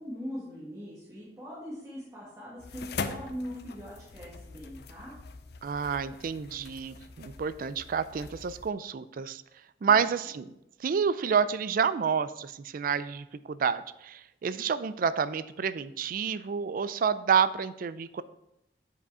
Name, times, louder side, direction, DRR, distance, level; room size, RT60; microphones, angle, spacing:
voice 1, 0.0-5.1 9.8-10.1, equal, 15° right, -8 dB, 2.0 m, -41 dB
sound 1, 2.6-8.7, left 4 dB, 65° left, 0.6 m, -42 dB
voice 2, 5.6-9.4 9.8-10.5 10.8-18.2, right 6 dB, 50° right, 15 dB, 0.4 m, -29 dB
8.1 x 5.0 x 4.8 m, 0.85 s
head